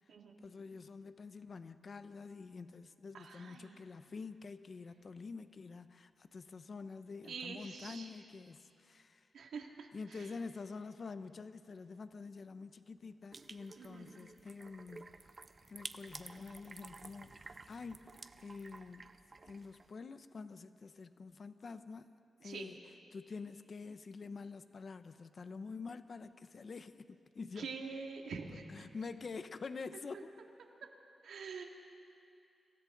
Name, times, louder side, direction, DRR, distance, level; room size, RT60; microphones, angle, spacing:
voice 1, 0.4-9.3 9.9-15.2 15.7-19.1 19.4-22.1 22.4-22.8 23.1-27.7 28.7-30.3, left 4 dB, 45° left, 11 dB, 0.7 m, -47 dB
voice 2, 3.1-3.8 7.3-8.1 9.3-9.9 13.8-14.1 22.4-22.7 27.6-28.9 31.2-31.6, right 5 dB, 90° right, 1 dB, 2.3 m, -45 dB
sound 1, 13.3-19.9, right 3 dB, 35° right, 0.7 m, -52 dB
29.5 x 26.0 x 3.9 m, 2.6 s
wide cardioid pair, 125°, 0 cm